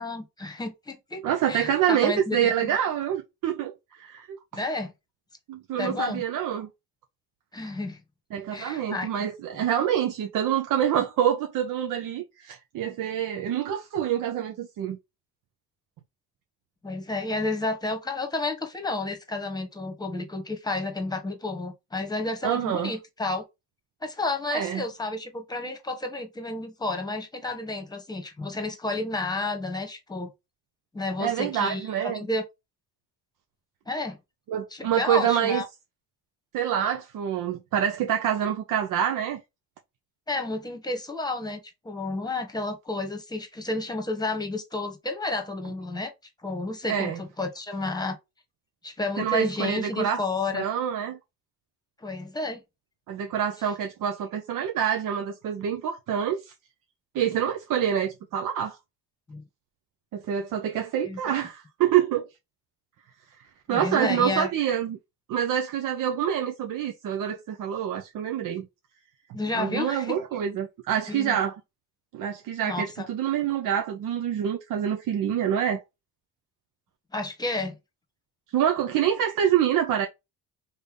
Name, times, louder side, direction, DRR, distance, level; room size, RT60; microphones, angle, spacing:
voice 1, 0.0-2.7 4.5-4.9 5.8-6.2 7.5-8.0 8.5-9.1 16.8-23.4 24.0-30.3 30.9-32.4 33.9-34.2 34.7-35.6 40.3-46.1 46.4-48.2 48.8-50.6 52.0-52.6 59.3-59.4 61.0-61.3 63.7-64.5 69.3-70.1 71.1-71.4 72.6-73.1 77.1-77.7, left 2 dB, 10° left, 1.1 m, -31 dB
voice 2, 1.2-4.6 5.5-6.7 8.3-15.0 22.4-22.9 24.5-24.8 31.2-32.2 34.5-35.6 36.5-39.4 46.9-47.2 49.2-50.2 50.5-51.2 53.1-56.5 57.1-58.8 60.1-62.3 63.7-65.0 65.3-68.7 69.5-71.5 72.1-75.8 78.5-80.1, right 9 dB, 65° right, 0.6 m, -26 dB
3.3 x 2.7 x 3.5 m
cardioid pair, 80°, 35 cm